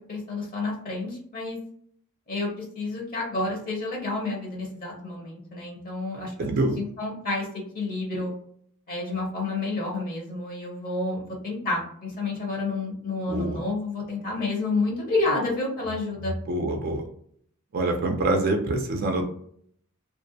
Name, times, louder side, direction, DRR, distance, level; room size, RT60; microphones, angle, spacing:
voice 1, 0.1-1.6 2.3-6.3 6.7-7.5 7.7-8.3 8.9-16.4, left 3 dB, 40° left, -1 dB, 0.8 m, -29 dB
voice 2, 6.4-6.8 13.3-13.6 16.5-17.0 17.7-19.3, right 2 dB, 45° right, 3 dB, 0.4 m, -25 dB
2.5 x 2.0 x 2.6 m, 0.63 s
head